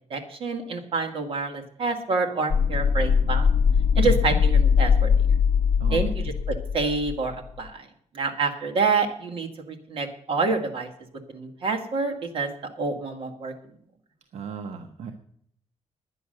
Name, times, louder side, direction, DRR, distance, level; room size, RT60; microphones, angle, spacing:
voice 1, 0.1-3.5 4.0-5.1 5.9-6.1 6.5-7.8 8.1-10.9 11.3-12.5 12.8-13.5, right 4 dB, 50° right, 3 dB, 2.1 m, -27 dB
sound 1, 2.5-7.3, left 6 dB, 40° left, 0.8 m, -21 dB
voice 2, 4.0-4.4 5.8-6.3 14.3-15.1, right 5 dB, 70° right, 5 dB, 1.1 m, -36 dB
10.5 x 9.8 x 6.7 m, 0.66 s
cardioid pair, 160°, 12 cm